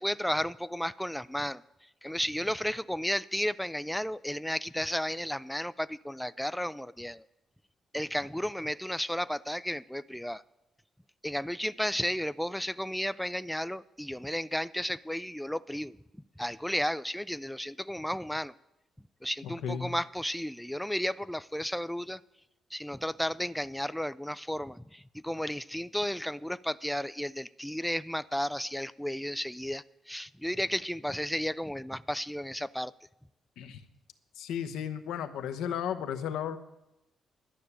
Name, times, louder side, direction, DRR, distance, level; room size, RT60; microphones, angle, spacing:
voice 1, 0.0-1.6 2.0-7.2 7.9-10.4 11.2-15.9 16.4-18.5 19.2-22.2 22.7-32.9, equal, 5° left, 15 dB, 0.4 m, -33 dB
voice 2, 19.4-19.9 33.6-33.8 34.4-36.6, left 8 dB, 80° left, 8 dB, 1.0 m, -34 dB
11.5 x 6.7 x 8.7 m, 0.91 s
supercardioid pair, 55°, 0 cm